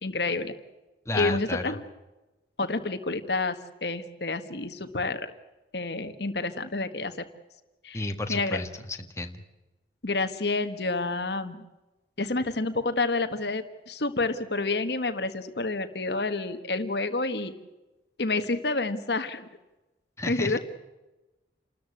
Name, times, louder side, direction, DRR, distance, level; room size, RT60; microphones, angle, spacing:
voice 1, 0.0-0.5 1.1-1.8 2.6-5.3 5.7-7.2 7.8-8.6 10.0-11.7 12.2-17.5 18.2-19.5 20.3-20.6, left 3 dB, 65° left, 9 dB, 1.5 m, -29 dB
voice 2, 1.0-1.7 7.9-9.4 20.2-20.6, left 2 dB, 15° left, 5 dB, 1.6 m, -32 dB
29.5 x 13.5 x 8.6 m, 1.1 s
head